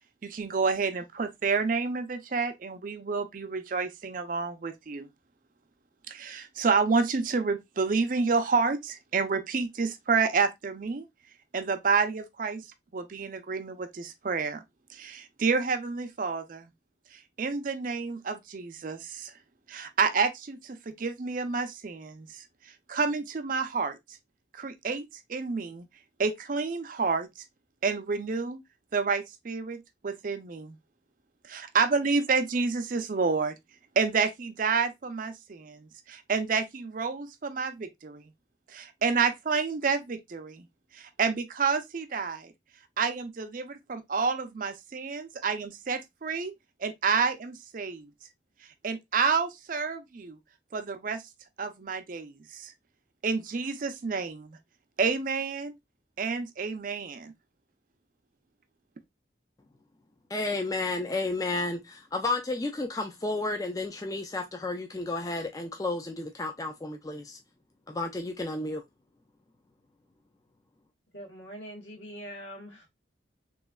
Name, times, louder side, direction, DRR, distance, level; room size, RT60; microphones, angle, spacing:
voice 1, 0.2-5.1 6.1-11.1 11.5-12.6 12.9-14.6 14.9-16.7 17.1-19.3 19.7-22.4 22.9-24.0 24.5-25.9 26.2-27.3 27.8-28.6 28.9-30.8 31.5-33.6 34.0-38.3 38.7-40.7 40.9-42.5 43.0-46.5 46.8-48.1 48.8-50.4 50.7-51.2 51.6-52.7 53.2-54.6 55.0-55.7 56.2-57.3, right 5 dB, 45° right, 0.5 m, -29 dB
voice 2, 60.3-67.4 67.9-68.8, left 2 dB, 20° left, 0.4 m, -32 dB
voice 3, 71.1-72.9, equal, 75° left, 1.3 m, -43 dB
3.5 x 3.0 x 2.3 m
head